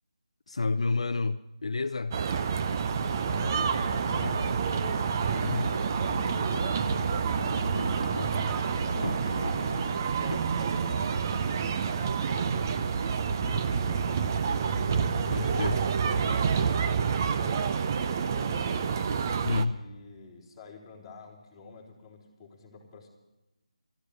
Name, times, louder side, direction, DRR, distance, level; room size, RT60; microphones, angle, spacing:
voice 1, 0.5-2.2 4.2-4.4 5.4-5.7 15.3-15.8 19.4-19.8, left 3 dB, 60° left, 0.5 m, -29 dB
sound 1, 2.1-19.7, right 6 dB, 30° right, 0.6 m, -28 dB
Boat Water vehicle, 2.7-10.4, left 2 dB, 85° left, 1.2 m, -39 dB
voice 2, 3.1-5.2 6.0-8.0 8.6-10.0 10.3-12.8 13.3-14.9 15.5-19.0 19.5-23.1, left 4 dB, 5° left, 3.7 m, -49 dB
13.5 x 13.5 x 6.5 m
figure-of-eight pair, 160°, 4 cm